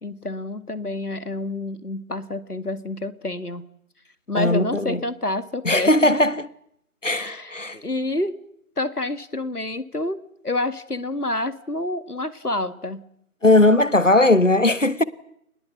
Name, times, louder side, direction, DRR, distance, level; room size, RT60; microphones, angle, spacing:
voice 1, 0.0-3.6 4.3-6.2 7.2-8.3 8.8-10.2 10.4-13.0, left 2 dB, 90° left, 2.0 m, -28 dB
voice 2, 4.3-5.0 5.6-6.5 7.0-7.8 13.4-15.0, left 2 dB, 55° left, 1.4 m, -18 dB
26.5 x 20.5 x 8.1 m
figure-of-eight pair, 180°, 44 cm